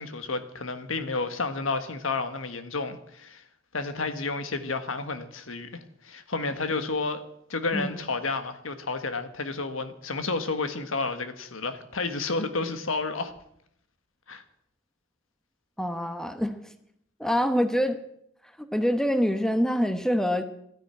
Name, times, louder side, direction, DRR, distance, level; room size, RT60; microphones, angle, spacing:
voice 1, 0.0-3.4 3.7-7.2 7.5-13.3 14.3-14.4, left 3 dB, 80° left, 1.5 m, -31 dB
voice 2, 15.8-16.6 17.2-18.0 18.6-20.4, equal, 5° left, 1.0 m, -25 dB
13.0 x 10.0 x 8.9 m
head